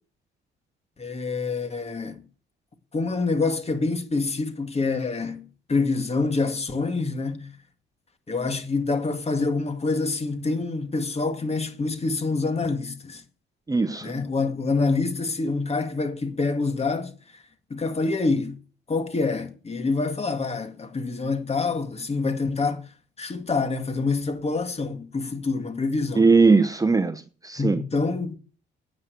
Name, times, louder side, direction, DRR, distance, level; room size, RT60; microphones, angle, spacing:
voice 1, 1.0-2.2 2.9-7.5 8.3-13.2 14.0-17.1 17.7-18.6 18.9-22.9 23.2-26.3 27.6-28.4, left 3 dB, 30° left, 2.2 m, -26 dB
voice 2, 13.7-14.1 26.1-27.8, right 4 dB, 15° right, 1.0 m, -20 dB
9.6 x 9.1 x 8.0 m
cardioid pair, 90°, 20 cm